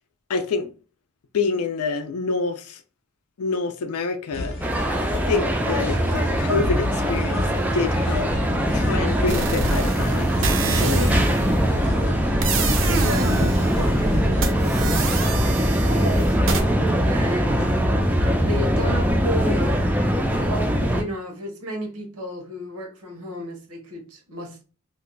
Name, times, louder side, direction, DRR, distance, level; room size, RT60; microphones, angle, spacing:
voice 1, 0.3-0.7 1.3-2.8 3.4-4.6 4.9-5.0 5.2-7.5 7.7-8.3 8.7-11.1, left 4 dB, 85° left, 0.4 m, -27 dB
sound 1, 4.3-16.1, left 1 dB, 45° left, 0.7 m, -31 dB
sound 2, 4.6-21.0, equal, 5° right, 0.3 m, -22 dB
sound 3, 9.3-11.6 12.4-13.9 14.4-16.6, right 4 dB, 60° right, 0.5 m, -28 dB
voice 2, 11.7-12.1 12.5-16.4 17.0-17.5 18.2-19.8 20.3-24.6, equal, 85° right, 1.1 m, -33 dB
2.6 x 2.2 x 3.8 m
head